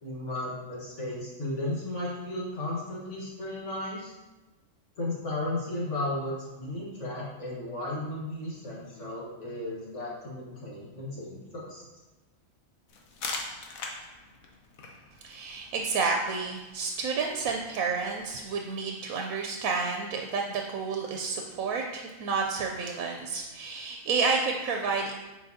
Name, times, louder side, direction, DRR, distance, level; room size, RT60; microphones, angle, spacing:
voice 1, 0.0-4.1 5.0-11.8, left 1 dB, 60° left, -5 dB, 1.7 m, -34 dB
sound 1, 12.9-18.4, left 3 dB, 80° left, 1.2 m, -43 dB
voice 2, 15.2-25.1, right 4 dB, 85° right, 2 dB, 1.0 m, -30 dB
7.6 x 4.6 x 2.7 m, 1.1 s
omnidirectional pair, 1.4 m